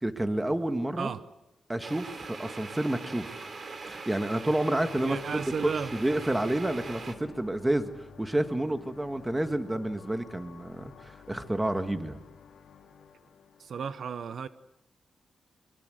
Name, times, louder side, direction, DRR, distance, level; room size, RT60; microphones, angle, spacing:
voice 1, 0.0-1.1 1.7-3.5 3.8-12.2, right 1 dB, 10° right, 1.8 m, -30 dB
sound 1, 1.8-7.2, right 4 dB, 50° right, 3.0 m, -41 dB
sound 2, 4.8-13.8, left 7 dB, 80° left, 3.0 m, -52 dB
voice 2, 5.0-5.9 13.6-14.5, right 6 dB, 65° right, 0.8 m, -33 dB
24.0 x 22.0 x 7.9 m
cardioid pair, 100°, 0 cm